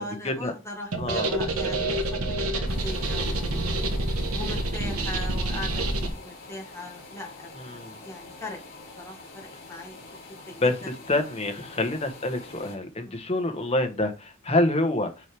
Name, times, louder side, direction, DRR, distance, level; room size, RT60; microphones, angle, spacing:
voice 1, 0.0-4.0 4.3-7.5 7.8-8.6 9.0-10.0 10.5-10.9 11.6-11.7 13.0-13.2, left 1 dB, 15° left, 0 dB, 1.7 m, -40 dB
sound 1, 0.9-6.1, right 2 dB, 85° right, 1.2 m, -27 dB
voice 2, 1.0-1.3 7.6-7.9 10.6-15.1, left 2 dB, 30° left, 5 dB, 1.0 m, -26 dB
sound 2, 2.6-12.8, left 3 dB, 45° left, 2.5 m, -46 dB
6.1 x 4.6 x 3.4 m, 0.29 s
head